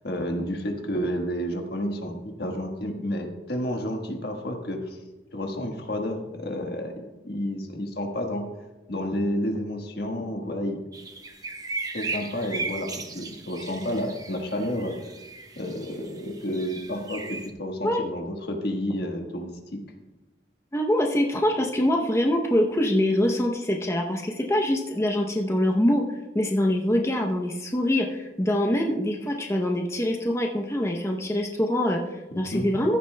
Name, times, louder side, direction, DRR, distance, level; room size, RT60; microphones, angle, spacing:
voice 1, 0.0-5.0 5.3-8.5 8.9-10.8 11.9-15.0 15.5-19.5 32.3-32.7, equal, 60° left, 3 dB, 1.4 m, -30 dB
sound 1, 10.9-17.5, right 3 dB, 20° right, 0.7 m, -37 dB
voice 2, 20.7-26.0 26.3-33.0, left 1 dB, 15° left, 1 dB, 0.7 m, -24 dB
15.0 x 11.0 x 2.2 m, 1.1 s
head